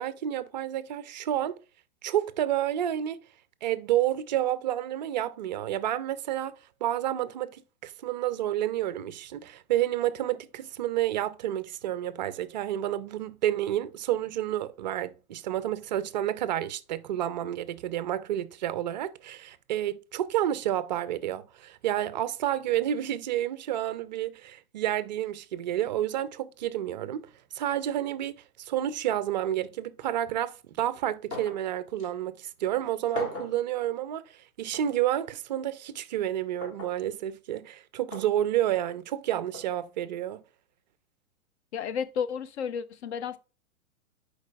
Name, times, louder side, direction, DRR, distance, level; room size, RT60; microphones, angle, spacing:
voice 1, 0.0-1.6 2.0-3.2 3.6-6.5 6.8-27.3 27.5-34.3 34.6-40.4, right 12 dB, 35° right, 0.4 m, -30 dB
sound 1, 31.3-31.6 32.0-32.1 33.1-33.6 34.7-34.9 36.6-37.0 38.1-38.3 39.5-39.7, left 2 dB, 30° left, 2.0 m, -38 dB
voice 2, 41.7-43.4, left 7 dB, 50° left, 0.6 m, -32 dB
10.5 x 4.6 x 2.3 m
hypercardioid pair, 115°, 43 cm